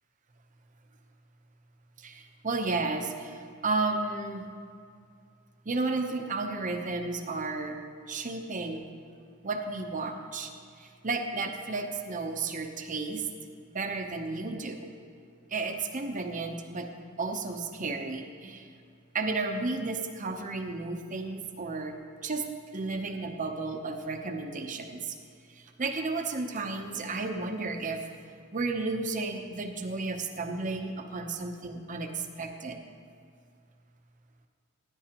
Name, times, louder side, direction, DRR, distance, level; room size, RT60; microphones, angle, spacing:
voice 1, 2.0-4.5 5.7-7.8 8.1-8.8 9.4-10.5 10.8-13.3 13.7-14.9 15.5-16.9 17.2-18.7 19.1-22.0 22.2-22.4 22.7-25.2 25.5-28.0 28.5-32.8, right 3 dB, 40° right, 4 dB, 0.7 m, -33 dB
15.5 x 9.9 x 2.9 m, 2.3 s
head